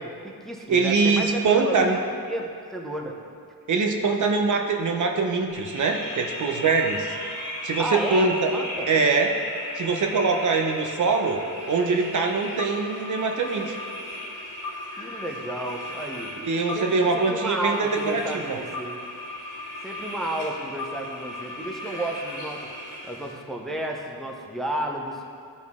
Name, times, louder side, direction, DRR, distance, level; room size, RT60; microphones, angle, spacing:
voice 1, 0.0-3.2 7.8-8.9 15.0-16.3 16.7-19.0 19.8-22.7 23.0-25.2, right 1 dB, ahead, 0 dB, 0.7 m, -32 dB
voice 2, 0.7-2.0 3.7-7.1 7.6-8.5 8.9-9.3 9.8-11.4 11.7-13.8 16.4-18.6, right 4 dB, 55° right, 3 dB, 0.8 m, -23 dB
sound 1, 5.5-23.3, left 1 dB, 55° left, 1.9 m, -36 dB
12.0 x 4.1 x 3.6 m, 2.3 s
cardioid pair, 90°, 37 cm